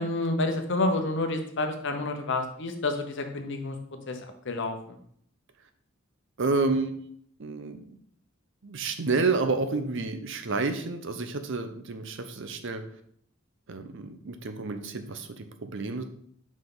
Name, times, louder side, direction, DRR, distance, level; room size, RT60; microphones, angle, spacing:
voice 1, 0.0-3.8 4.1-5.0, left 2 dB, 60° left, 5 dB, 0.9 m, -29 dB
voice 2, 6.4-7.1 7.4-8.0 8.6-12.8 13.7-16.0, right 3 dB, 60° right, 8 dB, 0.7 m, -30 dB
5.7 x 5.1 x 3.9 m, 0.65 s
head